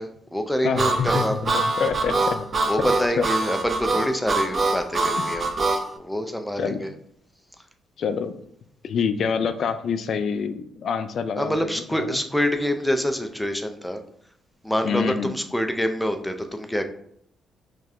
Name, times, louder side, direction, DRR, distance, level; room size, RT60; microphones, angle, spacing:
voice 1, 0.0-1.4 2.6-5.5 6.0-6.9 11.4-14.0 14.6-16.8, equal, 5° left, 6 dB, 0.5 m, -26 dB
voice 2, 0.6-1.5 1.8-2.5 3.2-3.3 6.6-6.8 8.0-8.3 8.8-11.7 12.0-12.2 14.8-15.4, left 6 dB, 60° left, 10 dB, 0.4 m, -26 dB
Harmonica, 0.8-5.8, right 3 dB, 40° right, 0.6 m, -24 dB
5.2 x 3.2 x 2.4 m, 0.69 s
cardioid pair, 90°, 0 cm